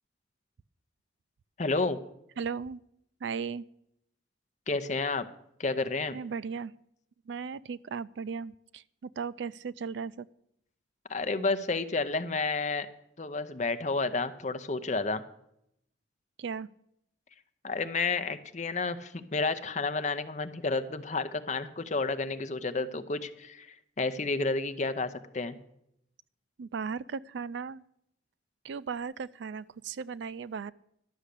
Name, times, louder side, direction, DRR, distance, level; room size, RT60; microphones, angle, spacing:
voice 1, 1.6-2.0 4.7-5.3 5.6-6.2 11.1-12.9 13.2-15.2 17.6-23.7 24.0-25.6, left 3 dB, 40° left, 11 dB, 0.7 m, -30 dB
voice 2, 2.4-2.8 3.2-3.6 6.1-6.7 7.3-10.3 16.4-16.7 26.6-27.8 28.6-30.7, right 5 dB, 70° right, 19 dB, 0.3 m, -36 dB
11.5 x 6.4 x 8.3 m, 0.76 s
head